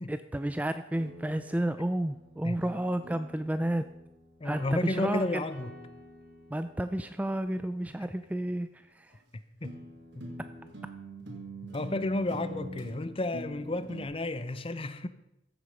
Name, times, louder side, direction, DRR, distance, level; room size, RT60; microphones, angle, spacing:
voice 1, 0.1-3.9 4.4-5.4 6.5-9.2, right 1 dB, 10° right, 0.3 m, -31 dB
sound 1, 1.0-4.7 5.6-8.3 9.1-9.2 9.6-14.0, right 1 dB, 65° right, 2.6 m, -46 dB
voice 2, 4.4-5.7 9.6-9.8 10.1-10.3 11.6-15.1, left 2 dB, 30° left, 0.7 m, -32 dB
sound 2, 4.5-7.0, left 1 dB, 15° left, 2.8 m, -53 dB
14.5 x 8.1 x 5.3 m
head